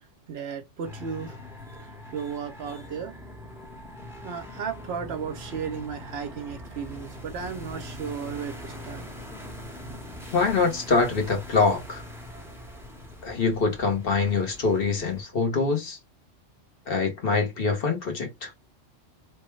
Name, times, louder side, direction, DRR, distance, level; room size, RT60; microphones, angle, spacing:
voice 1, 0.3-1.4 1.8-3.2 4.2-9.0, right 6 dB, 60° right, 0.9 m, -35 dB
sound 1, 0.8-15.2, left 1 dB, ahead, 0.7 m, -42 dB
voice 2, 10.3-12.0 13.2-16.0 16.9-18.5, left 4 dB, 50° left, 1.1 m, -24 dB
3.2 x 2.2 x 3.0 m
omnidirectional pair, 1.3 m